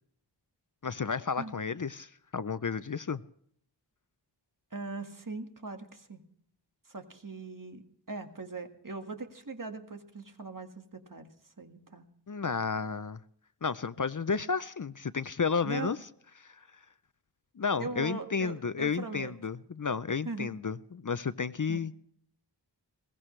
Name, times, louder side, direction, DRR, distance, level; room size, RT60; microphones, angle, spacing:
voice 1, 0.8-3.2 12.3-13.2 13.6-16.0 16.4-16.6 17.6-21.9, left 5 dB, 45° left, 0.6 m, -32 dB
voice 2, 4.7-6.2 6.9-11.3 11.6-12.1 15.6-15.9 17.8-19.3 20.3-20.5 21.7-21.8, right 3 dB, 45° right, 1.9 m, -40 dB
21.5 x 18.5 x 3.2 m
wide cardioid pair, 50°, 44 cm